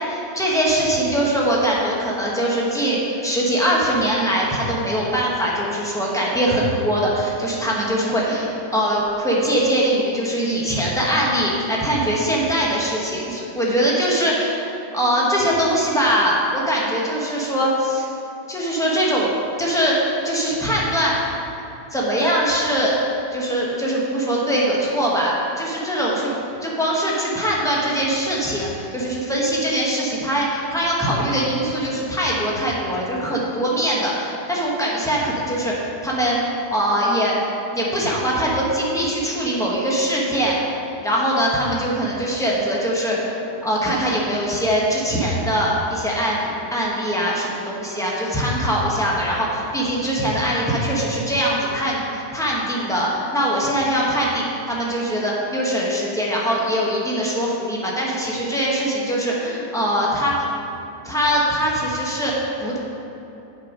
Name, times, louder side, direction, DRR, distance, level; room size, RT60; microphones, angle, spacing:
voice 1, 0.1-18.1 18.5-19.3 19.6-21.3 21.9-22.9 23.3-26.3 26.6-34.1 34.5-37.3 37.7-40.6 40.9-60.7 61.0-62.8, equal, ahead, -5 dB, 1.0 m, -22 dB
8.4 x 5.7 x 5.1 m, 3.0 s
omnidirectional pair, 1.9 m